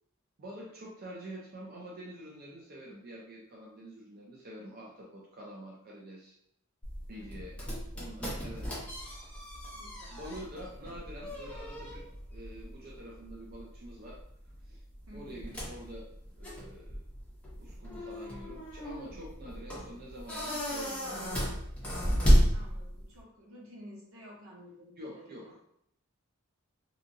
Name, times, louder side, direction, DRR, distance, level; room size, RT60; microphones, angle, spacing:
voice 1, 0.4-6.4 7.1-7.6 7.9-8.7 10.1-14.2 14.6-14.8 15.1-16.1 16.4-17.0 17.6-21.4 25.0-25.6, equal, 45° right, -3 dB, 0.4 m, -47 dB
sound 1, 6.8-23.2, equal, 5° left, 0.7 m, -33 dB
voice 2, 7.1-7.6 9.7-10.4 15.0-15.6 22.5-25.5, equal, 75° right, -3 dB, 1.0 m, -52 dB
2.7 x 2.6 x 2.6 m, 0.73 s
head